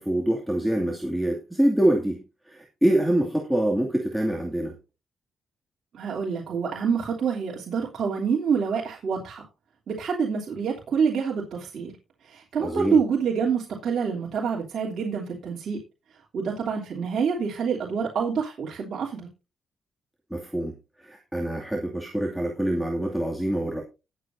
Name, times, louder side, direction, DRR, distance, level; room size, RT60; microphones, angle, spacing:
voice 1, 0.0-4.7 12.6-13.0 20.3-20.7 21.0-23.8, right 1 dB, ahead, -1 dB, 2.4 m, -25 dB
voice 2, 5.9-9.5 9.9-11.9 12.2-15.8 16.3-19.3, right 6 dB, 60° right, -4 dB, 3.1 m, -27 dB
19.5 x 8.0 x 2.7 m, 0.28 s
cardioid pair, 100°, 0 cm